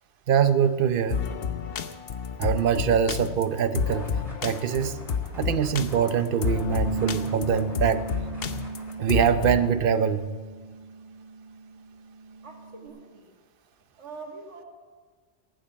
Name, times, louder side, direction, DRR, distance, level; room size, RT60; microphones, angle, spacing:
voice 1, 0.3-1.2 2.4-4.1 4.4-5.0 5.3-8.1 9.0-10.2, right 8 dB, 55° right, 13 dB, 0.8 m, -23 dB
sound 1, 1.1-9.7, left 6 dB, 60° left, 0.9 m, -30 dB
sound 2, 3.8-8.9, equal, 35° left, 6.3 m, -49 dB
Bass guitar, 6.6-12.9, right 4 dB, 30° right, 4.5 m, -37 dB
voice 2, 12.4-13.3 14.0-14.6, right 4 dB, 85° right, 0 dB, 2.3 m, -43 dB
19.5 x 7.6 x 8.6 m, 1.5 s
omnidirectional pair, 1.2 m